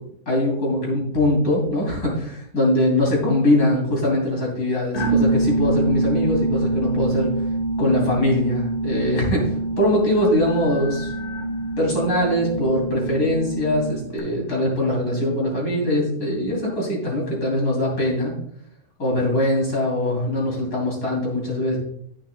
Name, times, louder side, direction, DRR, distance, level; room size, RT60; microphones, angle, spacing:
voice 1, 0.3-7.3 7.8-11.1 11.8-18.3 19.0-21.8, left 1 dB, 90° left, -2 dB, 3.5 m, -22 dB
sound 1, 4.9-14.2, right 2 dB, 75° left, 1.9 m, -25 dB
10.5 x 8.7 x 2.3 m, 0.70 s
omnidirectional pair, 1.6 m